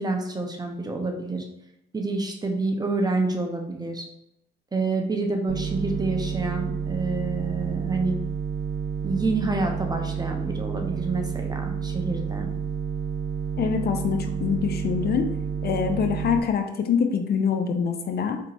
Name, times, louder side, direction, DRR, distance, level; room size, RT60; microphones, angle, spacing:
voice 1, 0.0-1.5 1.9-4.0 4.7-8.2 9.0-12.5, right 3 dB, 20° right, 3 dB, 0.7 m, -28 dB
sound 1, 5.5-16.4, right 6 dB, 75° right, 0.4 m, -30 dB
voice 2, 13.6-15.3 15.6-18.4, left 6 dB, 55° left, 6 dB, 0.5 m, -25 dB
4.5 x 2.9 x 2.6 m, 0.78 s
cardioid pair, 90°, 20 cm